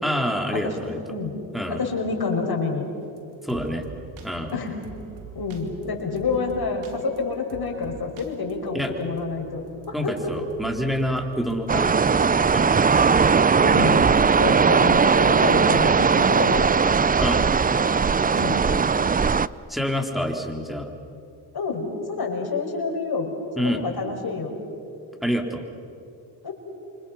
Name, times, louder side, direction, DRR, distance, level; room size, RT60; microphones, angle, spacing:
voice 1, 0.0-1.0 1.5-1.8 3.4-3.8 4.2-4.5 8.7-8.9 9.9-12.9 13.2-13.4 17.2-17.4 17.7-18.8 19.7-20.9 23.6-23.8 25.2-25.6, equal, ahead, 3 dB, 3.9 m, -28 dB
voice 2, 1.7-2.9 4.5-4.8 5.3-10.3 13.6-14.0 14.4-16.7 18.3-18.6 21.5-24.5 26.4-26.5, left 4 dB, 50° left, 2 dB, 5.6 m, -28 dB
sound 1, 3.0-13.3 13.7-16.7, right 4 dB, 80° right, 2.6 m, -45 dB
sound 2, 11.7-19.5, right 5 dB, 20° right, 0.5 m, -19 dB
28.5 x 25.5 x 5.9 m, 2.6 s
supercardioid pair, 55°, 48 cm